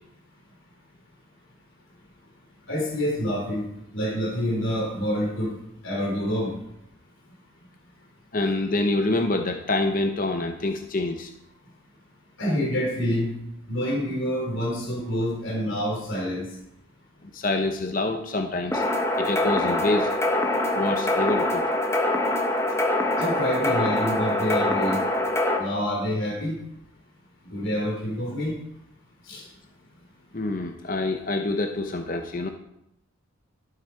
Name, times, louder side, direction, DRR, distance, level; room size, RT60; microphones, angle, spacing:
voice 1, 2.7-5.6 5.8-6.6 12.4-13.3 13.7-16.4 23.2-25.0 25.5-26.6 27.4-28.6 29.2-29.5, equal, 65° left, -2 dB, 3.3 m, -27 dB
voice 2, 8.3-11.3 17.3-18.8 19.2-20.1 20.7-21.6 30.3-32.5, left 2 dB, 40° left, 5 dB, 0.7 m, -26 dB
sound 1, 18.7-25.6, left 1 dB, 15° left, 1.2 m, -24 dB
12.0 x 8.7 x 4.5 m, 0.80 s
head